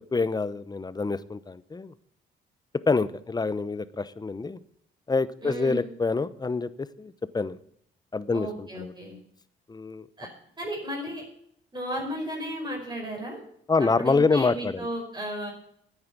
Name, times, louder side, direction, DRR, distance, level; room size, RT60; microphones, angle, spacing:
voice 1, 0.1-1.9 2.9-4.6 5.1-7.6 8.1-8.9 9.7-10.1 13.7-14.9, left 4 dB, 20° left, 16 dB, 0.8 m, -26 dB
voice 2, 5.4-5.9 8.3-9.2 10.2-10.3 10.6-11.2 11.7-13.4 13.8-15.5, equal, 20° right, -1 dB, 5.2 m, -34 dB
9.6 x 9.1 x 8.2 m, 0.68 s
cardioid pair, 90°, 20 cm